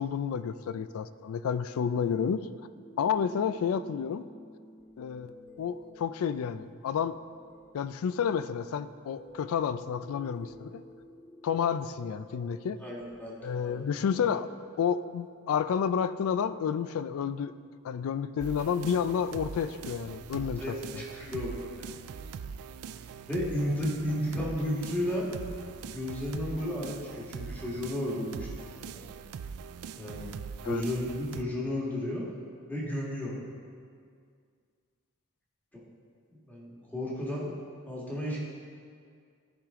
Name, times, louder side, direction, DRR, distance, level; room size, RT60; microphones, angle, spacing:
voice 1, 0.0-2.5 3.0-4.3 5.0-7.2 7.7-10.8 11.4-12.8 13.4-14.5 14.8-17.5 17.8-20.6 30.6-30.8, left 7 dB, 65° left, 13 dB, 0.3 m, -30 dB
sound 1, 2.8-15.9 20.3-20.5, left 1 dB, 50° left, 2.3 m, -53 dB
voice 2, 12.8-13.8 20.6-21.9 23.3-25.3 25.9-29.0 30.0-30.3 30.6-32.2 32.7-33.3 36.5-37.5 37.9-38.4, left 1 dB, 10° left, -5 dB, 1.6 m, -33 dB
sound 2, 18.4-31.4, right 6 dB, 75° right, 0.3 m, -42 dB
13.5 x 5.0 x 3.6 m, 2.1 s
head